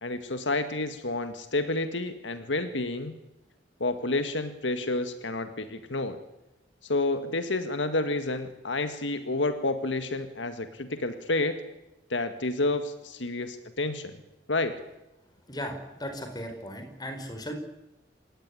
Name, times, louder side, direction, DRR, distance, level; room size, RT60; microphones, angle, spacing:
voice 1, 0.0-3.1 3.8-6.2 6.9-11.6 12.1-14.1 14.5-14.7, left 2 dB, 85° left, 9 dB, 1.9 m, -29 dB
voice 2, 15.5-17.5, equal, 20° left, 6 dB, 5.2 m, -37 dB
27.5 x 17.0 x 9.8 m, 0.96 s
head